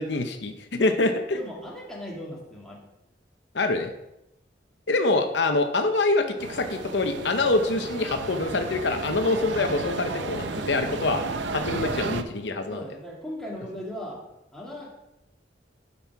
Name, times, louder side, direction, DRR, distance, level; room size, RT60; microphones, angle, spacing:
voice 1, 0.0-1.4 3.5-3.9 4.9-11.2 11.5-12.8, left 2 dB, 75° left, 6 dB, 0.8 m, -25 dB
voice 2, 1.3-2.8 12.7-14.2 14.5-15.0, equal, 5° left, -4 dB, 2.2 m, -38 dB
sound 1, 6.4-12.2, right 3 dB, 85° right, 0.7 m, -33 dB
11.5 x 5.4 x 4.7 m, 0.89 s
head